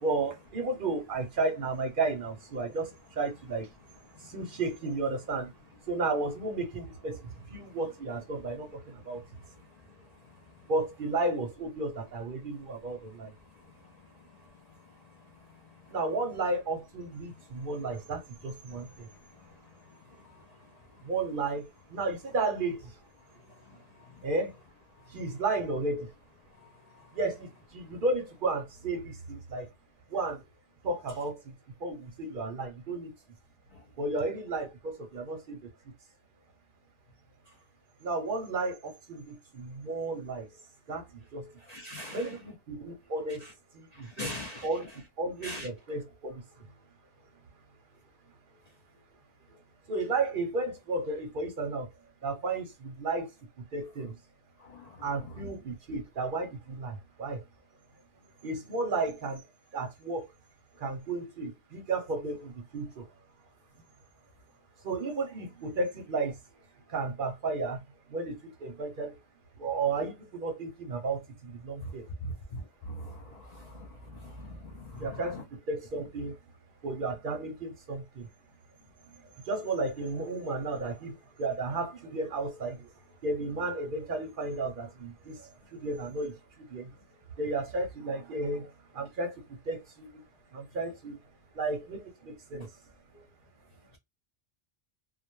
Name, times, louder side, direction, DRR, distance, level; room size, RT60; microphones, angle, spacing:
voice 1, 0.0-3.7 4.2-5.5 5.9-9.2 10.7-13.3 15.9-19.1 21.0-22.9 24.2-24.5 25.1-26.1 27.1-29.7 30.1-30.4 30.8-31.5 31.8-33.1 34.0-35.7 38.0-40.5 40.9-41.1 41.3-41.5 42.1-43.5 43.7-44.3 44.6-44.9 45.2-46.7 49.5-49.6 49.9-51.9 52.2-53.3 53.7-54.1 55.0-57.4 58.4-59.4 59.7-60.3 60.7-63.1 64.8-66.4 66.9-67.8 68.1-69.2 69.6-72.1 75.0-76.4 76.8-78.3 79.4-82.9 83.2-86.9 87.4-90.2 90.5-91.2 91.5-92.7, right 3 dB, 55° right, 0.7 m, -33 dB
voice 2, 41.7-42.4 43.4-43.5 44.2-44.8 45.4-45.7 72.5-72.6 75.0-75.4, left 1 dB, 60° left, 0.4 m, -39 dB
2.2 x 2.2 x 2.9 m
omnidirectional pair, 1.2 m